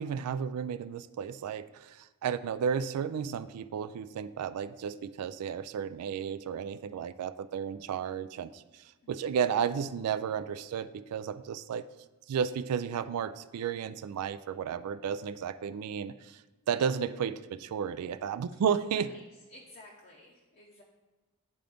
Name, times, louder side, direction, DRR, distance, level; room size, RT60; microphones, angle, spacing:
voice 1, 0.0-11.9 12.3-16.4 16.7-19.1, right 7 dB, 80° right, 14 dB, 0.3 m, -33 dB
voice 2, 9.0-9.3 18.9-19.2 19.5-20.8, left 1 dB, 40° left, -1 dB, 0.7 m, -53 dB
9.8 x 3.8 x 3.4 m, 1.2 s
head